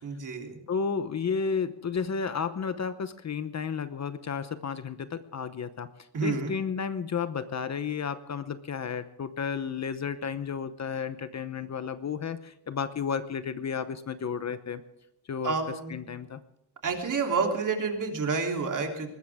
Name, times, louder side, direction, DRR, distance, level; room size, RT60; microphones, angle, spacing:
voice 1, 0.0-0.6 6.1-6.5 15.4-15.9 16.8-19.1, right 4 dB, 45° right, 2 dB, 3.4 m, -29 dB
voice 2, 0.7-5.9 6.2-14.8 15.3-15.6 15.9-16.4, left 6 dB, 40° left, 11 dB, 0.9 m, -32 dB
21.0 x 19.0 x 3.6 m, 0.83 s
wide cardioid pair, 155°, 43 cm